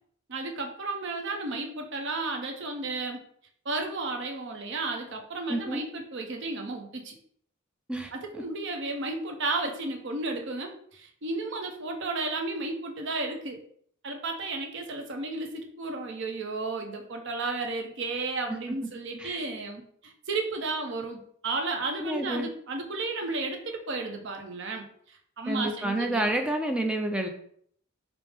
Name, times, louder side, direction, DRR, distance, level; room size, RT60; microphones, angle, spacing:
voice 1, 0.3-3.2 3.6-7.2 8.1-13.6 14.0-26.3, right 3 dB, 60° right, 3 dB, 0.6 m, -33 dB
voice 2, 5.5-5.8 7.9-8.4 19.2-19.4 22.0-22.5 25.5-27.3, right 1 dB, 5° right, 3 dB, 0.4 m, -29 dB
4.8 x 2.0 x 3.4 m, 0.63 s
head